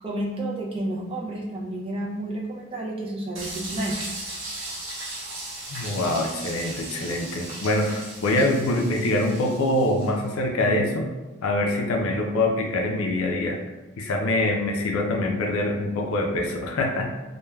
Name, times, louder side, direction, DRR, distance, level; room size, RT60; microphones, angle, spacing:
voice 1, 0.0-4.0, right 1 dB, 25° right, -4 dB, 0.4 m, -30 dB
sound 1, 3.3-10.2, right 2 dB, 55° right, 0.7 m, -37 dB
voice 2, 5.7-11.1 11.4-13.6 14.0-17.2, left 1 dB, 75° left, 2 dB, 0.4 m, -24 dB
3.1 x 2.2 x 2.2 m, 1.2 s
head